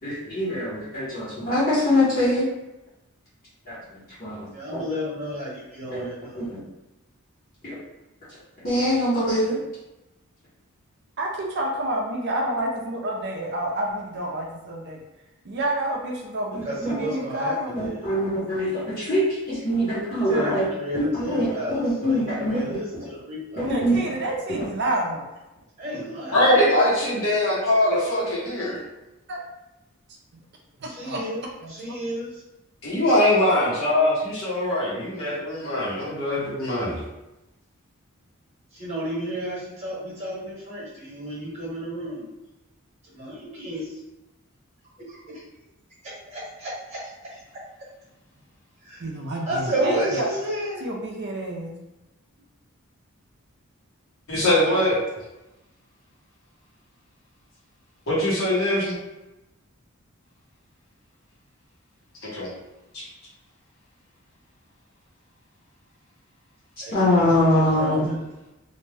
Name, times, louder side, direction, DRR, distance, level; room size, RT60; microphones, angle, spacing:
voice 1, 0.0-2.4 3.7-3.8 4.2-4.8 5.9-6.1 6.3-6.6 7.6-7.7 8.6-9.6 16.5-17.0 17.7-20.7 20.9-22.8 23.6-24.0 24.6-24.7 66.9-68.1, left 1 dB, 40° left, -10 dB, 0.8 m, -23 dB
voice 2, 4.5-6.4 16.6-18.1 20.3-23.7 25.8-26.5 30.8-31.4 31.7-32.4 38.7-42.3 43.1-44.0 45.1-45.4 46.3-47.4 48.8-49.1 49.5-50.8 66.8-67.3 67.5-68.2, equal, 30° right, -6 dB, 1.0 m, -32 dB
voice 3, 11.2-15.0 15.4-17.8 23.6-25.4 29.3-29.4 30.8-31.2 31.6-32.0 49.0-50.2 50.8-51.7, right 1 dB, 50° right, 0 dB, 0.4 m, -29 dB
voice 4, 26.3-28.8 32.8-37.0 54.3-55.0 58.1-59.0 62.3-62.5 62.9-63.0, left 1 dB, 65° left, -7 dB, 1.1 m, -22 dB
2.5 x 2.1 x 3.3 m, 0.97 s
head